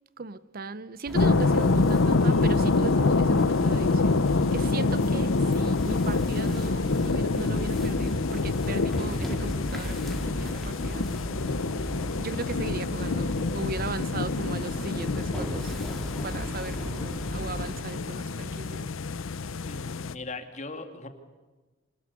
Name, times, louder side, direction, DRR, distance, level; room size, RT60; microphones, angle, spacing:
voice 1, 0.2-11.2 12.2-15.7 16.2-18.9, right 3 dB, 45° right, 0.7 m, -37 dB
sound 1, 1.1-20.1, left 3 dB, 75° left, 0.7 m, -26 dB
sound 2, 1.1-17.7, equal, ahead, 3.9 m, -36 dB
voice 2, 19.6-21.1, left 3 dB, 35° left, 2.4 m, -39 dB
25.5 x 20.0 x 8.4 m
head